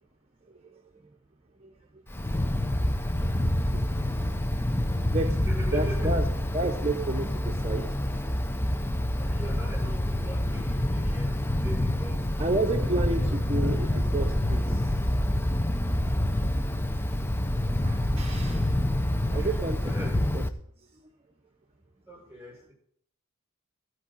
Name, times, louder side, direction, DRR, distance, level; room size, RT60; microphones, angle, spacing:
voice 1, 0.4-1.1 1.5-2.0 3.1-4.2 5.1-5.4 5.7-6.2 6.5-8.6 12.1-15.0 17.8-20.4 20.8-21.0, right 2 dB, 25° right, 2 dB, 0.9 m, -33 dB
Wind, 2.1-20.5, left 1 dB, 10° left, 0.5 m, -27 dB
voice 2, 5.5-6.1 9.2-11.4 11.6-13.7 19.0-20.2 22.1-22.7, right 1 dB, 10° right, -3 dB, 6.4 m, -42 dB
13.5 x 4.8 x 8.6 m, 0.66 s
head